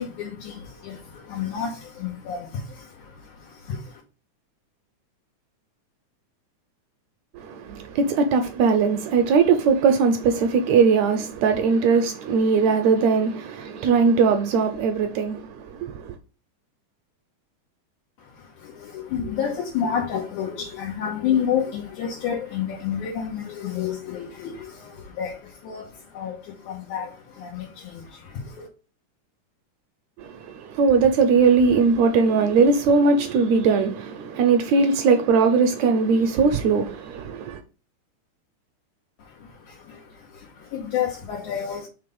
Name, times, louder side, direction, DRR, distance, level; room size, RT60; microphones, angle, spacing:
voice 1, 0.0-4.0 18.2-28.7 39.2-41.9, left 8 dB, 75° left, 2.5 m, -30 dB
voice 2, 7.3-16.2 30.2-37.6, right 5 dB, 75° right, 1.8 m, -20 dB
5.4 x 3.9 x 5.2 m
omnidirectional pair, 3.6 m